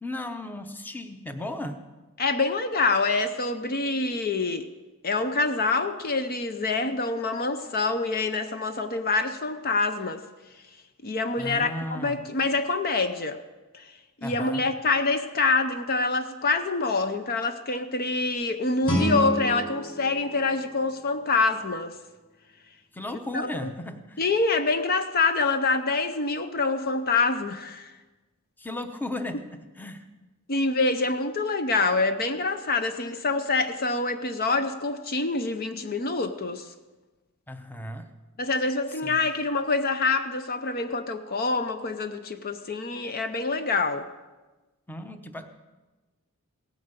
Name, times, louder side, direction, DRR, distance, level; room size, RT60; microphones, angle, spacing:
voice 1, 0.0-1.8 11.4-12.2 14.2-14.7 22.9-24.2 28.6-30.0 37.5-38.1 38.9-39.3 44.9-45.5, left 1 dB, 10° left, 8 dB, 0.8 m, -35 dB
voice 2, 2.2-4.7 5.0-10.2 11.0-13.4 13.7-13.9 14.2-22.0 23.3-23.7 24.2-27.9 30.5-36.7 38.4-44.1, left 3 dB, 45° left, 9 dB, 0.6 m, -26 dB
Guitar, 18.8-21.6, equal, 25° left, 4.7 m, -30 dB
17.0 x 9.2 x 6.7 m, 1.2 s
head